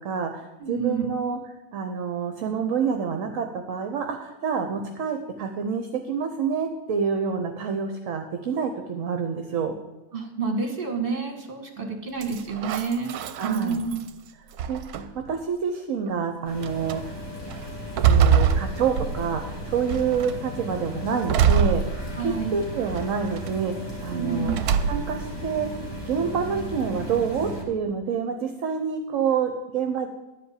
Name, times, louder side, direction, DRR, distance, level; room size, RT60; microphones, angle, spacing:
voice 1, 0.0-1.4 1.7-9.7 11.8-12.0 13.3-13.9 14.7-17.1 18.1-24.5 24.9-25.7 26.1-30.1, right 6 dB, 60° right, 5 dB, 1.2 m, -28 dB
voice 2, 0.6-1.1 10.1-13.1 13.4-14.0 22.2-22.6 24.1-24.6, right 5 dB, 35° right, 3 dB, 1.8 m, -28 dB
sound 1, 12.2-14.1 14.6-15.3 16.1-16.2 16.6-17.0 17.5-19.5 19.9-20.4 21.3-22.4 22.9-23.5 24.5-25.3, right 7 dB, 75° right, 1.2 m, -24 dB
sound 2, 16.4-27.6, equal, 15° left, 2.4 m, -36 dB
11.5 x 5.1 x 8.3 m, 1.1 s
omnidirectional pair, 1.6 m